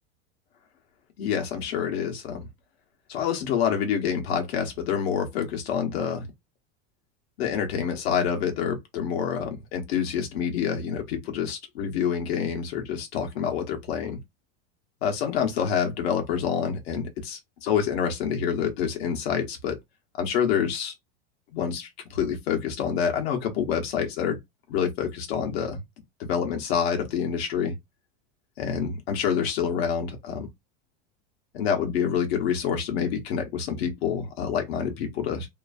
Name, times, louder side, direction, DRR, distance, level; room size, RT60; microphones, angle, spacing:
voice 1, 1.2-2.5 3.1-6.3 7.4-14.2 15.0-19.8 20.2-20.9 21.5-24.4 24.7-25.8 26.2-27.8 28.6-30.5 31.5-35.5, left 7 dB, 75° left, 1.1 m, -27 dB
2.8 x 2.4 x 2.6 m
supercardioid pair, 160°, 32 cm